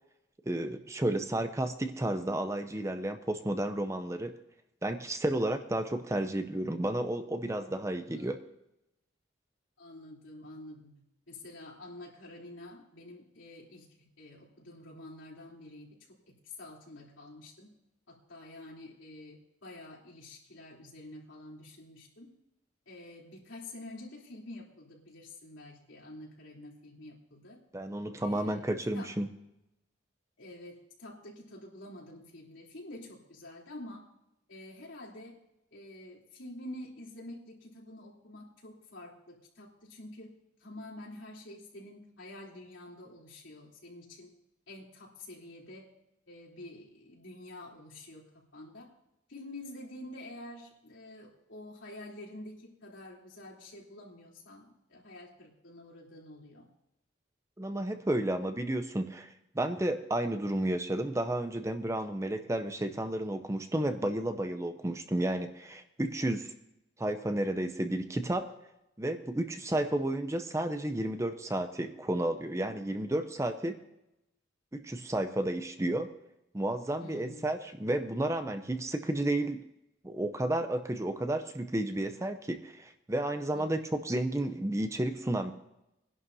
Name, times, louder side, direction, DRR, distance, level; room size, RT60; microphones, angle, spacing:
voice 1, 0.5-4.3 4.8-8.4 27.7-29.3 57.6-66.5 67.0-68.5 69.0-73.8 74.7-76.1 76.5-79.7 80.0-85.5, right 1 dB, 15° right, 9 dB, 0.6 m, -32 dB
voice 2, 9.8-11.0 11.3-16.0 16.3-17.7 18.1-22.3 22.8-27.6 28.2-29.1 30.4-34.0 34.5-35.4 35.7-40.3 40.6-44.3 44.7-45.9 46.3-48.9 49.3-56.7 77.0-77.5 83.5-84.0, left 1 dB, 85° left, -3 dB, 3.4 m, -48 dB
22.5 x 11.0 x 2.7 m, 0.86 s
head